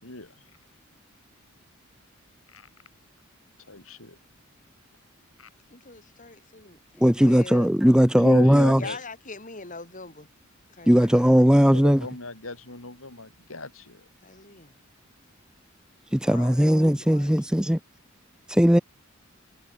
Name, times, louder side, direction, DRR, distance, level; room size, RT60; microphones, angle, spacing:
voice 1, 0.0-0.3 2.5-2.7 3.7-4.2 5.4-5.5 8.1-9.0 11.7-14.0, left 2 dB, 85° left, 6.7 m, -37 dB
voice 2, 5.7-7.7 8.8-10.3 10.7-11.4 14.2-14.7 16.2-17.5, left 3 dB, 40° left, 5.6 m, -42 dB
voice 3, 7.0-8.8 10.9-12.0 16.1-17.8 18.5-18.8, equal, 5° right, 0.7 m, -18 dB
head